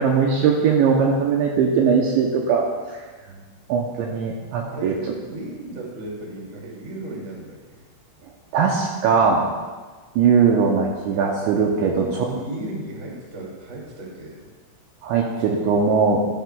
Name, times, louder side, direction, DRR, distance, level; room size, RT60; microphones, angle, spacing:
voice 1, 0.0-3.0 3.3-3.4 3.7-5.0 8.5-9.5 10.2-12.2 15.0-16.2, right 5 dB, 80° right, -1 dB, 2.7 m, -20 dB
voice 2, 4.7-7.8 12.0-14.4 15.4-15.5, right 2 dB, 30° right, -3 dB, 1.1 m, -35 dB
15.0 x 12.5 x 2.4 m, 1.4 s
omnidirectional pair, 6.0 m